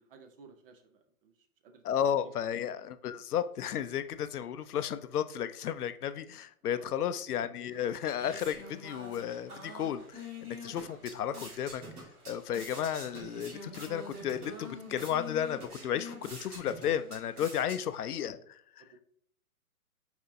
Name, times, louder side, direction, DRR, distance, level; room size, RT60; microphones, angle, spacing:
voice 1, 0.0-1.8 2.2-2.3 6.6-7.0 17.5-17.8 18.8-19.0, right 5 dB, 40° right, 7 dB, 0.7 m, -57 dB
voice 2, 1.8-11.8 12.3-18.4 18.8-18.9, left 9 dB, 80° left, 12 dB, 0.5 m, -33 dB
sound 1, 7.7-18.2, left 1 dB, 80° right, 1.9 m, -46 dB
4.3 x 4.2 x 2.7 m, 0.68 s
hypercardioid pair, 130°, 45 cm